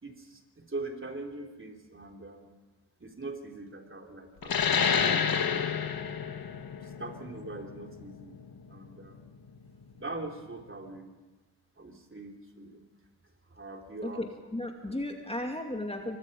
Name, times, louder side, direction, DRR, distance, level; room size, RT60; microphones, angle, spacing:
voice 1, 0.0-2.5 3.0-5.8 6.8-8.4 8.7-9.2 9.9-11.1 11.8-12.9 13.5-14.3 14.8-15.0, right 2 dB, 25° right, 3 dB, 3.4 m, -42 dB
sound 1, 4.4-9.6, left 7 dB, 45° left, 1.7 m, -29 dB
voice 2, 14.0-16.2, left 1 dB, 10° left, 3 dB, 2.4 m, -35 dB
24.5 x 19.5 x 5.5 m, 1.3 s
hypercardioid pair, 45°, 49 cm